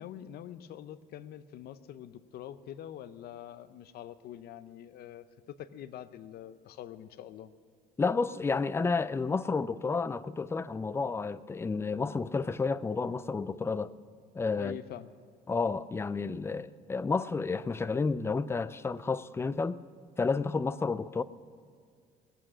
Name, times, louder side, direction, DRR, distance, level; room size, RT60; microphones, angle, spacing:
voice 1, 0.0-7.5 14.6-15.1, left 11 dB, 70° left, 0.7 m, -45 dB
voice 2, 8.0-13.9 14.3-14.8 15.5-19.8 20.2-21.2, left 4 dB, 15° left, 0.4 m, -31 dB
20.5 x 8.7 x 6.2 m
cardioid pair, 110°, 17 cm